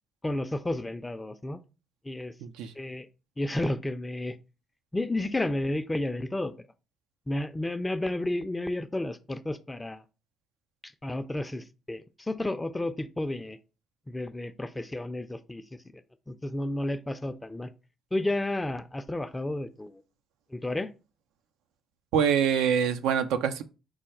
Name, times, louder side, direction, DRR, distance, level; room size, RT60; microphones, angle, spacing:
voice 1, 0.2-1.6 2.0-2.3 2.7-3.1 3.4-4.4 4.9-6.5 7.3-10.0 10.8-13.6 14.1-17.7 18.1-20.0 20.5-20.9, left 1 dB, 15° left, 0.5 m, -32 dB
voice 2, 2.4-2.7 22.1-23.6, right 7 dB, 80° right, 0.4 m, -25 dB
4.7 x 2.2 x 4.4 m
hypercardioid pair, 55°, 0 cm